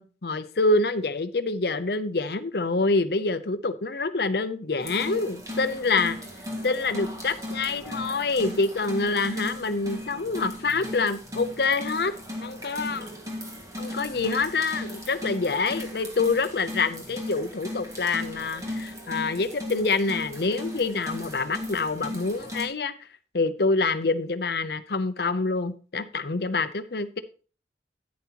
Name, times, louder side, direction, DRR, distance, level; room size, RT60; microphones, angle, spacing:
voice 1, 0.0-6.2 6.6-12.1 12.4-13.1 13.8-23.1 23.3-27.2, left 3 dB, 60° left, 0.7 m, -26 dB
sound 1, 4.8-22.7, left 1 dB, 20° right, 1.7 m, -37 dB
10.5 x 9.6 x 2.9 m
head